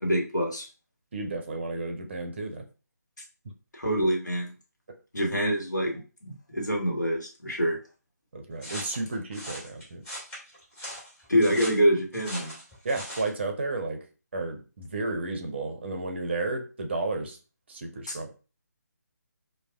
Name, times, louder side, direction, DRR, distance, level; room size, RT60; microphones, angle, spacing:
voice 1, 0.0-0.7 3.7-4.5 5.1-7.8 11.3-12.5 18.1-18.2, equal, 75° left, 0 dB, 1.1 m, -26 dB
voice 2, 1.1-2.7 8.3-10.0 12.8-14.0 14.3-17.4 17.7-18.3, right 2 dB, 40° right, 4 dB, 0.6 m, -32 dB
sound 1, 8.6-13.3, equal, 15° left, 1.9 m, -40 dB
4.5 x 2.2 x 2.3 m, 0.34 s
figure-of-eight pair, 150°, 10 cm